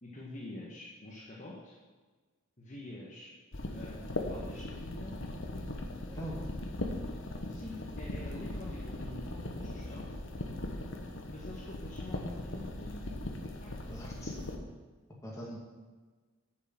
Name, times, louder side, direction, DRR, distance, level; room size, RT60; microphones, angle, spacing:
voice 1, 0.0-1.8 2.6-3.3 3.7-5.1 7.5-10.2 11.3-13.1 13.6-13.7, left 1 dB, 35° left, -4 dB, 1.4 m, -46 dB
sound 1, 3.5-14.6, left 1 dB, 65° left, 1.2 m, -39 dB
voice 2, 6.1-6.5 13.9-14.3 15.2-15.6, equal, 15° left, -4 dB, 2.1 m, -42 dB
8.0 x 6.6 x 7.6 m, 1.4 s
head